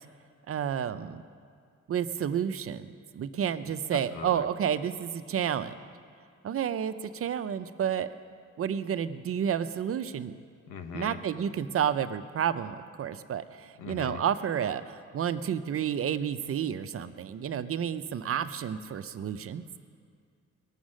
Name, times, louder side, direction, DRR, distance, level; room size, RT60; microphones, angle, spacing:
voice 1, 0.5-1.2 1.9-5.7 6.4-8.1 8.6-10.4 10.9-19.6, right 8 dB, 50° right, 11 dB, 0.6 m, -30 dB
voice 2, 3.9-4.5 10.7-11.2 13.8-14.2, left 6 dB, 90° left, 7 dB, 1.1 m, -40 dB
19.5 x 7.3 x 6.3 m, 2.2 s
cardioid pair, 90°, 30 cm